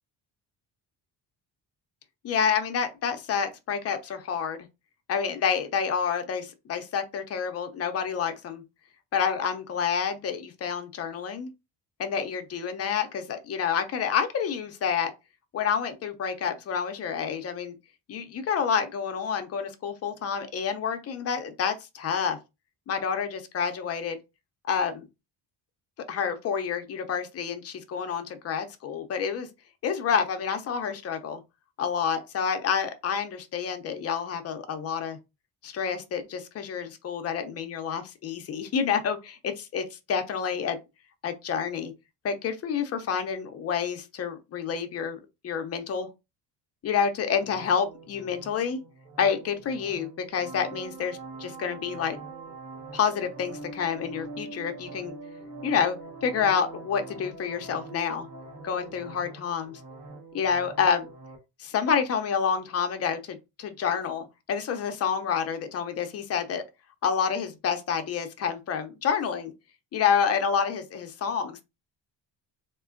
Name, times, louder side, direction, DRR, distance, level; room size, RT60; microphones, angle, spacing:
voice 1, 2.2-4.6 5.1-8.6 9.1-11.5 12.0-15.1 15.5-17.8 18.1-22.4 22.9-24.2 24.7-25.1 26.1-29.5 29.8-31.4 31.8-35.2 35.6-40.8 41.2-41.9 42.2-46.1 46.8-48.8 49.2-52.2 52.9-55.2 55.6-58.3 58.6-59.7 60.3-61.1 61.6-66.6 67.0-69.5 69.9-71.6, left 7 dB, 35° left, 0.4 m, -28 dB
sound 1, 47.4-61.4, right 3 dB, 55° right, 1.1 m, -43 dB
3.6 x 2.4 x 2.4 m
cardioid pair, 180°, 43 cm